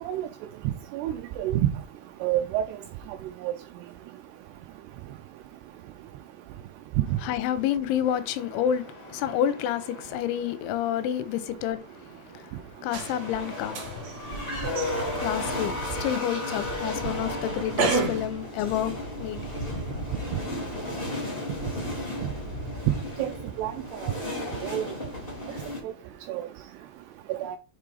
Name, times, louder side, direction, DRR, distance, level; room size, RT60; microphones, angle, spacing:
voice 1, 0.9-1.7 2.2-2.7 3.4-3.5 23.2-23.3 23.6-23.7 24.0-24.1 24.6-24.9 25.8-25.9 26.3-26.4 27.4-27.6, right 12 dB, 85° right, 2.4 m, -27 dB
voice 2, 7.2-19.6, left 10 dB, 85° left, 3.1 m, -30 dB
sound 1, 8.0-10.4 13.0-25.8, left 1 dB, 65° left, 0.5 m, -34 dB
sound 2, 12.9-18.3, right 4 dB, 65° right, 1.7 m, -33 dB
7.3 x 3.6 x 4.8 m
omnidirectional pair, 5.3 m